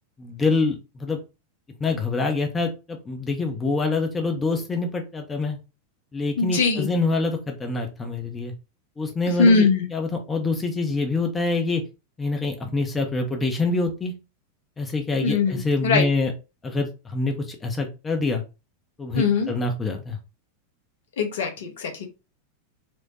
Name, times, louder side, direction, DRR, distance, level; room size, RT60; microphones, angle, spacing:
voice 1, 0.2-1.2 1.8-5.6 6.1-8.5 9.0-11.8 12.2-14.1 14.8-16.3 16.6-18.4 19.0-20.2, left 3 dB, 15° left, 3 dB, 0.6 m, -25 dB
voice 2, 6.4-6.9 9.4-9.8 15.2-16.0 19.1-19.5 21.2-22.1, left 4 dB, 60° left, 3 dB, 0.9 m, -21 dB
4.4 x 2.2 x 2.8 m, 0.29 s
figure-of-eight pair, 90°, 0 cm